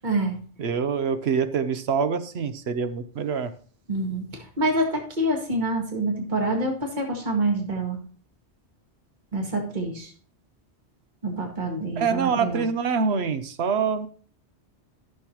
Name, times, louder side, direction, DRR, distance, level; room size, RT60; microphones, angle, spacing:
voice 1, 0.0-0.4 3.9-8.0 9.3-10.1 11.2-12.6, right 1 dB, 40° right, 0 dB, 2.1 m, -26 dB
voice 2, 0.6-3.5 12.0-14.1, right 6 dB, 70° right, 10 dB, 1.0 m, -25 dB
14.0 x 6.6 x 3.0 m, 0.43 s
omnidirectional pair, 1.2 m